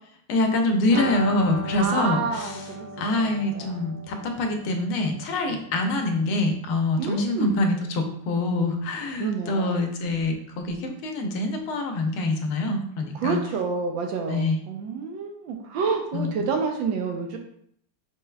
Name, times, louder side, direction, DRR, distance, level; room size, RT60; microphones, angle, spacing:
voice 1, 0.3-2.6 3.0-13.4 14.3-14.6 16.1-16.4, left 2 dB, 85° left, 4 dB, 1.6 m, -25 dB
sound 1, 0.9-6.5 6.7-6.8 7.1-7.2, left 1 dB, 30° right, 0.4 m, -36 dB
voice 2, 1.8-2.9 3.2-3.7 5.5-5.6 7.0-7.5 9.2-9.8 13.2-17.4, right 5 dB, 75° right, 3 dB, 1.3 m, -29 dB
5.2 x 4.3 x 2.3 m, 0.67 s
omnidirectional pair, 2.3 m